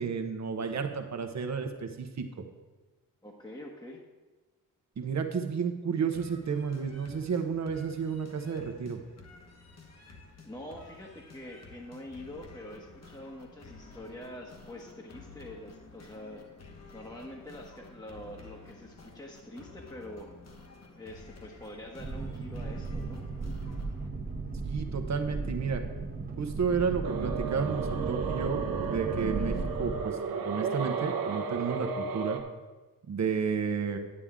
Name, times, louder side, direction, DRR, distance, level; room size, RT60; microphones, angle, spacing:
voice 1, 0.0-2.3 5.0-9.0 24.6-25.8 26.4-32.4 33.1-34.0, right 6 dB, 50° right, 6 dB, 1.1 m, -32 dB
voice 2, 3.2-4.0 10.4-16.4 16.9-20.3 20.9-23.2, left 1 dB, 10° left, 0 dB, 1.2 m, -45 dB
sound 1, 6.1-24.1, left 3 dB, 45° left, 1.4 m, -52 dB
Boat Water vehicle, 22.0-30.0, right 3 dB, 25° right, 1.2 m, -36 dB
sound 2, 27.0-32.4, right 5 dB, 85° right, 0.9 m, -33 dB
9.9 x 8.6 x 3.7 m, 1.2 s
cardioid pair, 85°, 35 cm